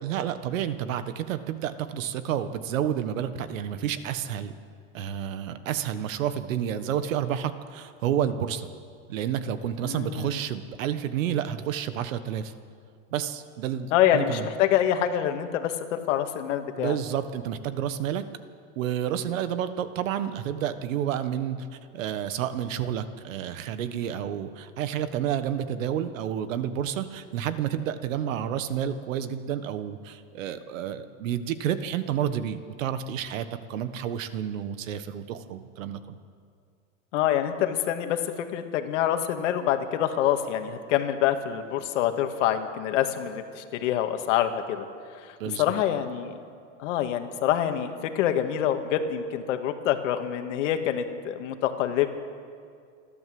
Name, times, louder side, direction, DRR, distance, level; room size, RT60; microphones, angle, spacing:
voice 1, 0.0-4.5 4.9-8.7 9.1-12.5 13.1-14.5 16.8-18.2 18.7-21.7 21.9-36.2 45.4-45.6, right 9 dB, 85° right, 11 dB, 1.5 m, -30 dB
voice 2, 9.8-10.4 13.9-17.0 37.1-44.9 45.2-46.4 46.8-52.1, left 10 dB, 70° left, 7 dB, 1.9 m, -26 dB
27.5 x 12.0 x 7.8 m, 2.2 s
supercardioid pair, 155°, 38 cm